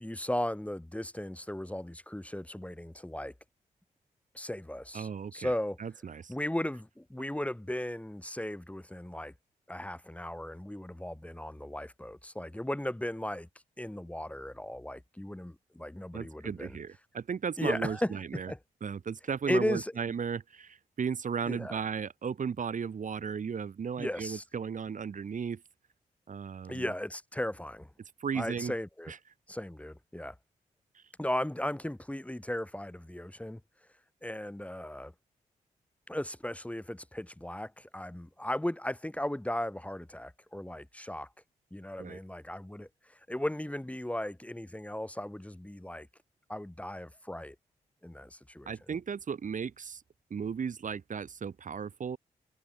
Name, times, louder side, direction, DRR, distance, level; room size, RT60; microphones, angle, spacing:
voice 1, 0.0-3.3 4.3-5.8 6.3-9.3 9.7-13.5 13.8-16.8 17.6-18.1 18.5-18.6 19.5-19.9 21.5-21.8 24.0-24.4 26.7-27.9 28.4-29.1 29.5-30.3 31.2-33.6 34.2-35.1 36.1-41.3 41.7-42.9 43.3-46.1 46.5-47.6 48.0-48.7, left 1 dB, 10° left, 2.1 m, -36 dB
voice 2, 4.9-5.5 5.8-6.3 16.1-18.5 18.8-25.6 26.3-26.9 28.2-28.7 29.1-29.2 30.9-31.0 42.0-42.2 48.7-50.0 50.3-52.2, right 6 dB, 60° right, 2.0 m, -35 dB
supercardioid pair, 45°, 15 cm